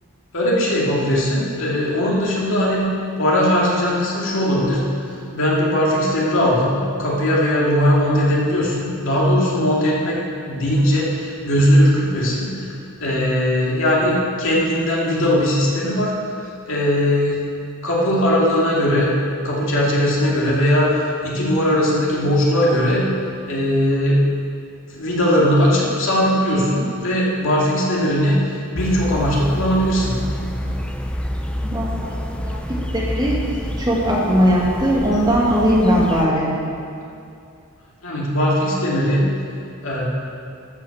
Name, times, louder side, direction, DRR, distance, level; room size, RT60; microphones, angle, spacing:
voice 1, 0.3-2.9 3.2-12.7 13.0-16.1 16.7-17.4 17.8-19.1 19.4-23.1 23.5-24.2 24.9-30.2 38.0-39.3 39.8-40.0, equal, 60° left, -5 dB, 2.6 m, -19 dB
sound 1, 28.8-36.2, equal, 5° left, 0.4 m, -28 dB
voice 2, 31.6-36.5, equal, 20° right, -5 dB, 2.0 m, -19 dB
12.0 x 6.4 x 7.3 m, 2.5 s
head